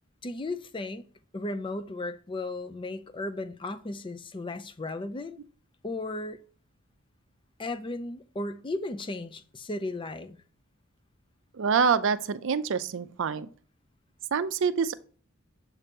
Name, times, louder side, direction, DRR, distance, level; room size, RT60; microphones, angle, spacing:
voice 1, 0.2-1.1 1.3-5.4 5.8-6.4 7.6-10.4, left 2 dB, 25° left, 0.5 m, -35 dB
voice 2, 11.5-13.5 14.3-14.9, right 6 dB, 60° right, 0.5 m, -26 dB
7.2 x 2.8 x 5.2 m
head